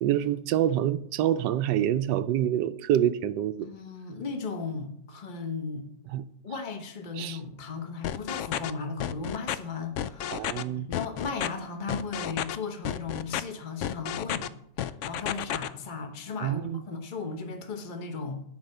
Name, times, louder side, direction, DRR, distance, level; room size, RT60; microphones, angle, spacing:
voice 1, 0.0-3.7 6.1-6.2 7.2-7.4 10.3-10.9 16.4-16.8, right 11 dB, 85° right, 1.2 m, -26 dB
voice 2, 3.6-5.8 6.4-10.5 10.9-14.5 15.0-18.4, left 4 dB, 30° left, 1.2 m, -36 dB
sound 1, 8.0-8.7 9.0-9.6 10.0-10.6 10.9-11.5 11.9-12.6 12.8-13.4 13.8-14.5 14.8-15.7, left 11 dB, 85° left, 0.6 m, -31 dB
10.0 x 5.6 x 7.7 m
omnidirectional pair, 1.8 m